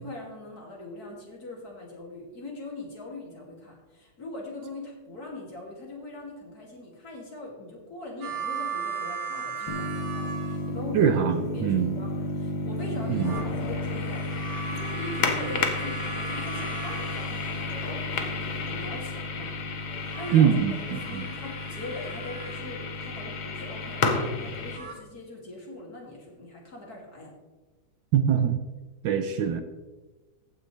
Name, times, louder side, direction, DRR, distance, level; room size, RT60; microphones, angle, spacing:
voice 1, 0.0-11.2 11.5-14.3 14.7-19.5 19.9-20.5 20.9-27.3, left 2 dB, 45° left, -2 dB, 3.0 m, -41 dB
sound 1, 8.2-11.0 12.8-18.0 19.9-22.7 24.5-25.0, right 6 dB, 85° right, 2.4 m, -38 dB
sound 2, 9.7-24.8, left 3 dB, 70° left, 1.9 m, -32 dB
voice 2, 10.9-11.9 13.1-13.3 20.3-20.8 21.1-21.2 28.1-28.6 29.0-29.6, right 8 dB, 70° right, 8 dB, 1.3 m, -22 dB
sound 3, 13.2-15.5, left 5 dB, 90° left, 1.9 m, -41 dB
14.5 x 9.4 x 3.3 m, 1.2 s
omnidirectional pair, 2.3 m